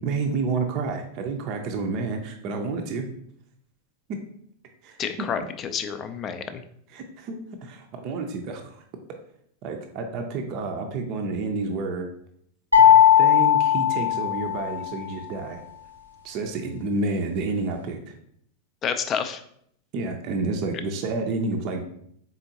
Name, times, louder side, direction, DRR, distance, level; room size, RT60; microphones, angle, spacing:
voice 1, 0.0-3.1 4.1-4.2 4.8-5.3 6.9-8.8 9.6-12.1 12.8-15.6 16.2-18.1 19.9-21.8, right 3 dB, 40° right, 3 dB, 0.5 m, -30 dB
voice 2, 5.0-6.6 18.8-19.4, left 7 dB, 30° left, 9 dB, 0.4 m, -29 dB
sound 1, 12.7-14.9, left 9 dB, 85° left, 0.6 m, -17 dB
4.2 x 3.7 x 2.7 m, 0.68 s
figure-of-eight pair, 90°, 0 cm